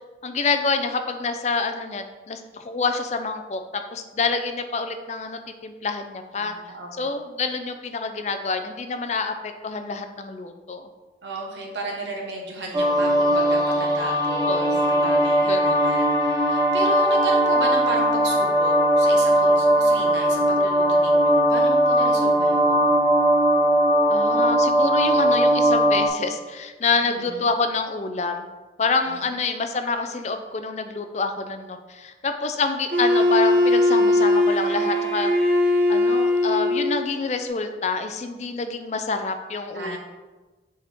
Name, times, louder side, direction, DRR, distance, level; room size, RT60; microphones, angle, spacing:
voice 1, 0.2-6.5 7.0-10.9 14.5-14.8 15.5-15.9 24.1-28.5 28.8-35.3 35.9-40.0, left 4 dB, 40° left, 7 dB, 0.4 m, -27 dB
voice 2, 6.4-7.1 11.2-22.9 27.1-27.4 29.1-29.4 39.7-40.0, right 2 dB, 85° right, -1 dB, 1.3 m, -34 dB
sound 1, 12.7-26.1, right 1 dB, 20° right, 0.8 m, -19 dB
Wind instrument woodwind instrument, 32.9-37.0, left 1 dB, 50° right, 0.9 m, -20 dB
6.2 x 4.4 x 3.5 m, 1.2 s
head